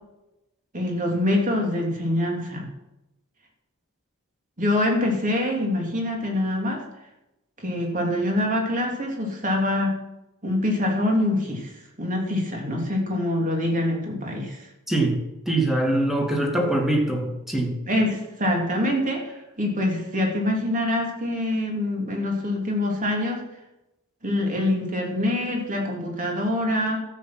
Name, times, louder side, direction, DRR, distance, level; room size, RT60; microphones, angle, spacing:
voice 1, 0.7-2.7 4.6-6.8 7.6-10.0 10.4-14.6 17.8-23.4 24.2-27.0, left 1 dB, 35° right, 1 dB, 3.1 m, -25 dB
voice 2, 14.9-15.2 15.5-17.7, right 1 dB, ahead, 1 dB, 2.3 m, -23 dB
13.0 x 8.3 x 6.2 m, 0.93 s
head